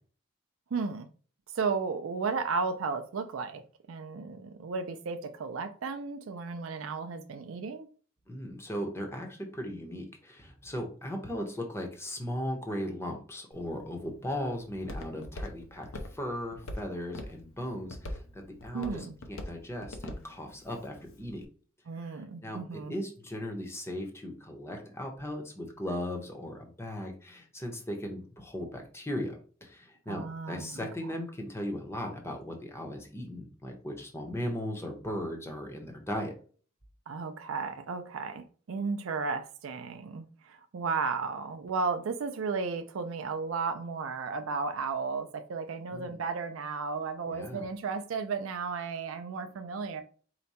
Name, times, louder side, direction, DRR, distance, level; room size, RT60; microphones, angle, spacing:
voice 1, 0.7-1.1 1.5-3.6 3.9-7.9 18.7-19.1 21.9-22.9 30.1-31.2 37.1-50.0, right 4 dB, 70° right, 0.4 m, -34 dB
voice 2, 8.3-21.4 22.0-29.4 29.6-36.3 45.9-46.2 47.3-47.6, equal, 15° left, 0.9 m, -37 dB
Walk footsteps, 13.5-21.4, left 1 dB, 80° left, 0.7 m, -44 dB
4.7 x 2.2 x 4.1 m
head